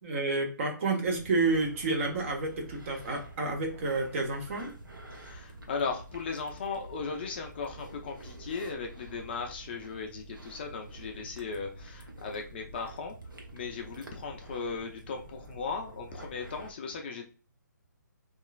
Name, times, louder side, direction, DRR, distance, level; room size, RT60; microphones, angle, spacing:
voice 1, 0.0-4.7, right 3 dB, 40° right, 1 dB, 0.8 m, -30 dB
sound 1, 1.0-16.7, right 2 dB, 90° right, 0.8 m, -48 dB
voice 2, 5.1-13.1 13.5-17.3, left 5 dB, 30° left, 2 dB, 0.4 m, -37 dB
2.8 x 2.4 x 2.3 m, 0.37 s
hypercardioid pair, 150°, 11 cm